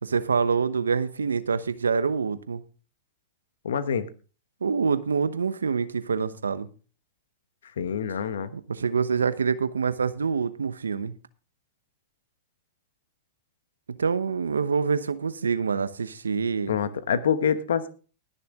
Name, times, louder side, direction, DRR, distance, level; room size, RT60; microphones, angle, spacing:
voice 1, 0.0-2.6 4.6-6.7 8.5-11.1 14.0-16.8, right 5 dB, 90° right, 0.9 m, -26 dB
voice 2, 3.6-4.1 7.8-8.5 16.7-17.9, left 7 dB, 75° left, 1.1 m, -26 dB
20.0 x 6.9 x 3.6 m
hypercardioid pair, 105°, 0 cm